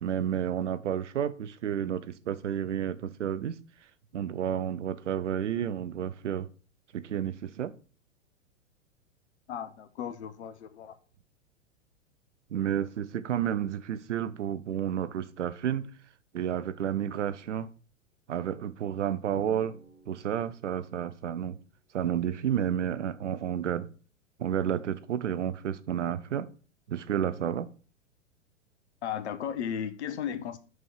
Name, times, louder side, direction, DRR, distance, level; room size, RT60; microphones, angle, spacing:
voice 1, 0.0-3.6 4.1-6.5 6.9-7.7 12.5-15.9 16.3-17.7 18.3-19.7 20.1-21.6 21.9-23.9 24.4-26.5 26.9-27.7, right 9 dB, 70° right, 0.7 m, -31 dB
voice 2, 9.5-11.0 29.0-30.6, left 8 dB, 60° left, 1.0 m, -35 dB
Drum, 19.4-21.1, right 5 dB, 30° right, 2.5 m, -51 dB
6.3 x 5.3 x 4.6 m
figure-of-eight pair, 100°, 37 cm